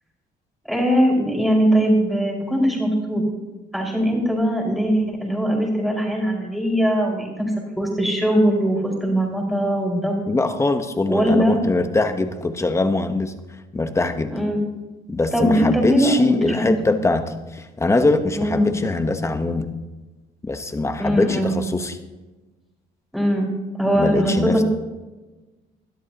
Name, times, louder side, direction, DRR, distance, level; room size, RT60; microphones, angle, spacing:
voice 1, 0.7-3.2 3.7-7.5 7.8-10.2 11.1-11.6 14.3-14.6 15.3-16.3 16.5-16.7 18.4-18.8 21.0-21.5 23.1-23.5 23.8-24.6, equal, ahead, -2 dB, 5.2 m, -20 dB
voice 2, 10.3-13.3 13.7-14.3 15.1-17.2 17.5-19.7 20.4-22.0 23.9-24.6, left 2 dB, 15° left, 8 dB, 1.1 m, -22 dB
20.5 x 12.5 x 3.0 m, 1.2 s
cardioid pair, 110°, 17 cm